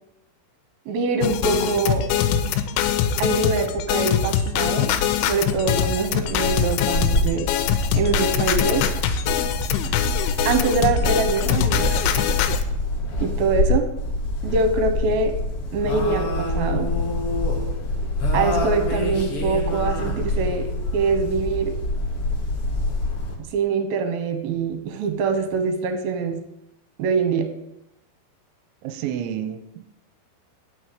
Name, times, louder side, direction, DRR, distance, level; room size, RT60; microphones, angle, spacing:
voice 1, 0.9-2.1 3.2-5.0 5.3-7.5 7.9-8.9 10.5-12.1 13.2-13.9 14.4-15.3 15.7-16.9 18.3-21.7 23.5-26.4 27.0-27.5, right 4 dB, 65° right, 7 dB, 2.6 m, -24 dB
sound 1, 1.2-12.6, left 8 dB, 90° left, 3.2 m, -23 dB
sound 2, 5.4-23.4, left 1 dB, 65° left, 1.3 m, -26 dB
voice 2, 28.8-29.9, right 9 dB, 85° right, 10 dB, 3.0 m, -31 dB
10.5 x 6.6 x 7.9 m, 0.83 s
omnidirectional pair, 5.5 m